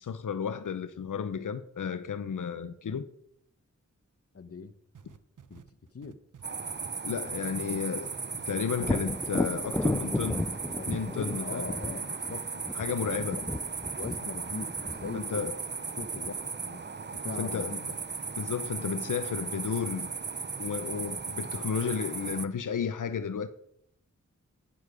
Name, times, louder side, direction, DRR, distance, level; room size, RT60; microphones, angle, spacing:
voice 1, 0.0-3.1 7.0-8.1 8.5-10.5 10.9-11.7 12.7-13.4 15.1-15.6 17.4-17.7 18.4-20.1 20.6-23.5, left 7 dB, 85° left, 0.7 m, -33 dB
voice 2, 4.3-4.7 5.5-5.6 5.9-6.2 10.8-13.5 14.0-15.5 16.0-16.4 16.6-16.8 17.1-17.9, left 4 dB, 50° left, 1.0 m, -40 dB
sound 1, 4.9-9.9 10.2-11.2 11.5-11.6, right 7 dB, 85° right, 0.9 m, -51 dB
sound 2, 6.4-22.5, right 5 dB, 35° right, 0.6 m, -37 dB
Thunder, 8.8-16.5 20.1-20.2 20.7-21.6, left 1 dB, 10° left, 0.4 m, -34 dB
11.5 x 9.9 x 5.0 m
wide cardioid pair, 60°, 30 cm